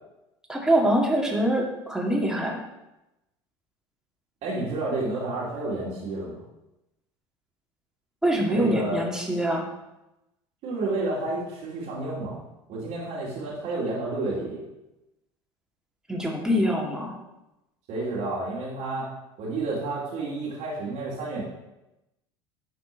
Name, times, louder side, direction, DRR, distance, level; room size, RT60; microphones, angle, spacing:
voice 1, 0.5-2.6 8.2-9.6 16.1-17.1, equal, 5° right, -1 dB, 2.2 m, -24 dB
voice 2, 4.4-6.4 8.5-9.0 10.6-12.4 12.7-14.6 17.9-19.1 19.4-21.4, right 2 dB, 55° right, -7 dB, 2.6 m, -30 dB
11.5 x 4.3 x 4.5 m, 0.95 s
hypercardioid pair, 75°, 14 cm